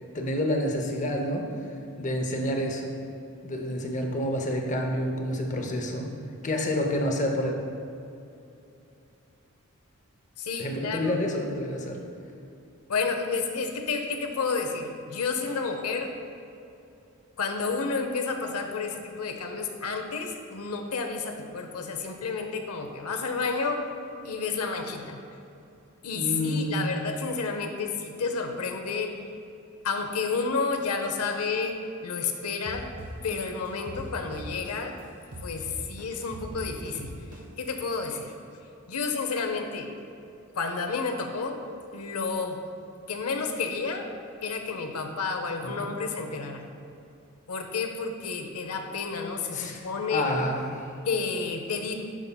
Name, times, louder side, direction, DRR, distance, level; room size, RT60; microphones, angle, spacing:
voice 1, 0.1-1.5 2.0-2.9 3.4-6.1 6.4-7.6 10.6-12.0 26.1-27.0 45.6-45.7 49.5-49.8 50.1-50.9, left 1 dB, 35° left, 2 dB, 0.6 m, -28 dB
voice 2, 10.4-11.2 12.9-16.1 17.4-23.8 24.2-25.2 26.0-29.2 29.8-31.7 32.0-32.9 33.2-34.9 35.4-37.1 37.6-38.3 38.9-39.9 40.6-41.6 41.9-42.6 43.1-44.1 44.4-46.6 47.5-50.2 51.1-51.9, left 4 dB, 85° left, 5 dB, 0.7 m, -30 dB
sound 1, 32.7-35.0 35.3-37.7, right 1 dB, 85° right, 1.0 m, -40 dB
11.0 x 5.5 x 2.2 m, 2.7 s
head